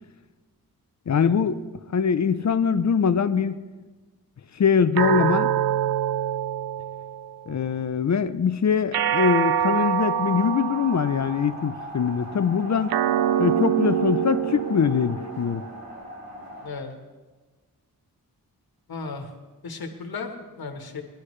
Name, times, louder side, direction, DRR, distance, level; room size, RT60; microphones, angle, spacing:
voice 1, 1.1-1.6 1.9-3.6 4.6-5.5 7.5-12.9 13.4-15.6, left 6 dB, 50° left, 13 dB, 0.5 m, -22 dB
sound 1, 5.0-7.5 8.9-11.5 12.9-15.5, right 10 dB, 85° right, 0.5 m, -25 dB
sound 2, 10.0-16.7, equal, 70° right, 2.9 m, -39 dB
voice 2, 16.6-17.0 18.9-19.3 19.6-21.0, left 4 dB, 75° left, 3 dB, 1.5 m, -35 dB
21.0 x 11.5 x 3.2 m, 1.3 s
wide cardioid pair, 105°, 37 cm